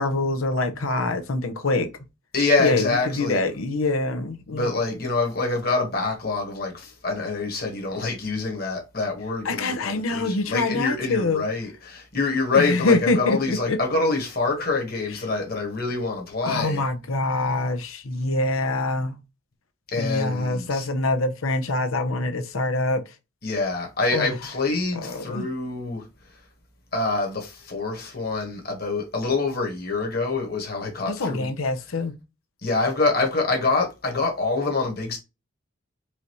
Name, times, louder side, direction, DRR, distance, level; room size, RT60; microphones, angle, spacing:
voice 1, 0.0-1.9 2.6-4.7 9.4-11.4 12.5-13.8 16.4-19.1 20.0-23.0 24.1-24.3 24.9-25.5 31.1-32.2, left 2 dB, 75° left, 0.7 m, -25 dB
voice 2, 2.3-3.5 4.5-16.8 19.9-20.9 23.4-26.1 26.9-31.5 32.6-35.2, left 3 dB, 45° left, 1.5 m, -26 dB
4.9 x 2.7 x 3.0 m
head